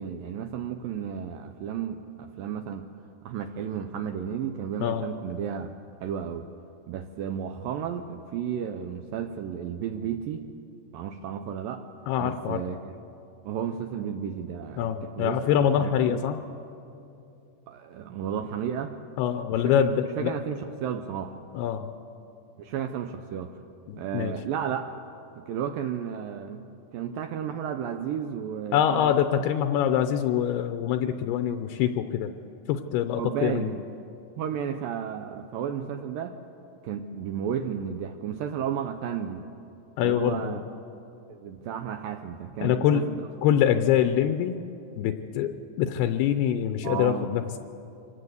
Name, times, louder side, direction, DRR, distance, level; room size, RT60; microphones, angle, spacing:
voice 1, 0.0-2.9 3.2-5.7 6.0-6.5 6.9-10.5 10.9-11.9 12.2-13.0 13.5-15.4 15.8-16.3 17.7-19.0 19.6-21.4 22.6-23.6 24.0-24.9 25.3-26.6 26.9-29.5 33.2-33.8 34.4-36.4 36.8-39.4 40.0-40.6 41.3-43.3 46.8-47.3, right 8 dB, 80° right, 7 dB, 2.1 m, -33 dB
voice 2, 12.1-12.6 14.8-16.4 19.2-20.4 21.5-21.9 23.9-24.3 28.7-32.3 32.7-33.8 40.0-40.6 42.6-43.1 43.4-44.6 45.0-47.4, left 9 dB, 80° left, 8 dB, 2.7 m, -25 dB
25.5 x 18.0 x 8.1 m, 2.7 s
omnidirectional pair, 4.8 m